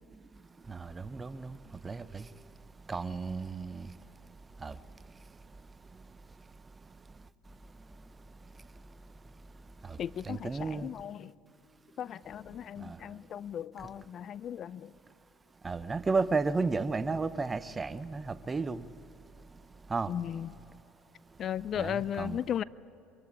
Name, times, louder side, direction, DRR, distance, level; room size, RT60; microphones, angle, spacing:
voice 1, 0.7-1.6 1.8-2.2 2.9-3.9 4.6-4.7 9.9-10.0 10.2-10.9 12.8-13.0 15.6-18.8 19.9-20.1 21.8-22.4, right 4 dB, 25° right, 0.8 m, -33 dB
voice 2, 10.0-11.3 12.0-14.9 20.1-20.5 21.4-22.6, left 9 dB, 50° left, 0.4 m, -36 dB
24.0 x 14.5 x 10.0 m
hypercardioid pair, 75°, 0 cm